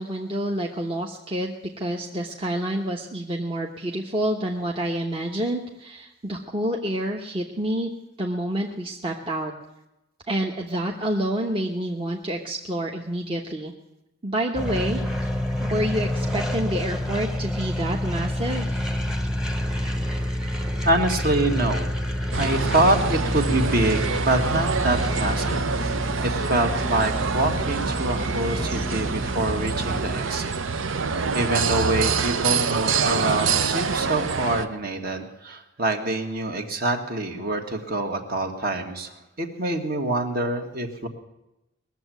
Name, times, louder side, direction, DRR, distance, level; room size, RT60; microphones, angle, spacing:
voice 1, 0.0-7.9 8.2-9.5 10.3-13.7 14.2-15.0 15.6-18.8, right 1 dB, 25° right, 0 dB, 1.0 m, -28 dB
sound 1, 14.5-30.2, left 1 dB, 5° right, 1.1 m, -28 dB
voice 2, 20.8-21.9 22.4-25.6 26.2-30.5 31.3-41.1, right 2 dB, 45° right, 4 dB, 1.7 m, -25 dB
sound 2, 22.3-34.7, right 5 dB, 70° right, 0.8 m, -26 dB
20.5 x 7.4 x 9.1 m, 0.92 s
head